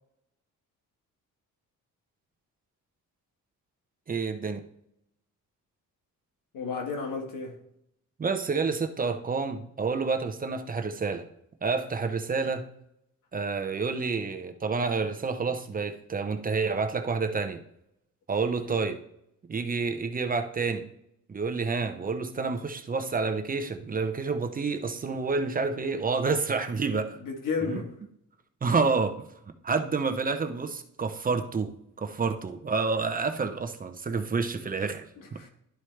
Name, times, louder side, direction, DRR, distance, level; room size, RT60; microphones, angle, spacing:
voice 1, 4.1-4.6 8.2-11.3 11.6-12.7 13.3-17.6 18.3-19.0 19.5-20.8 21.3-27.2 27.7-27.8 28.6-29.2 29.6-31.7 32.0-35.0, right 4 dB, 25° right, 0.6 m, -29 dB
voice 2, 6.5-7.6 27.2-27.9 35.2-35.5, left 5 dB, 90° left, 1.5 m, -32 dB
11.5 x 4.4 x 3.2 m
cardioid pair, 130°, 32 cm